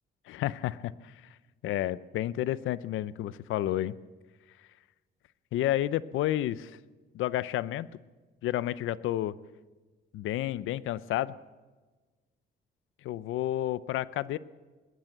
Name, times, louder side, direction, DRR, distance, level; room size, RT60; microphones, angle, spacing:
voice 1, 0.3-1.1 1.6-4.0 5.5-6.7 7.1-7.9 8.4-9.3 10.1-11.3 13.0-14.4, left 13 dB, 85° left, 18 dB, 0.6 m, -30 dB
19.5 x 18.0 x 7.9 m, 1.3 s
cardioid pair, 90°, 20 cm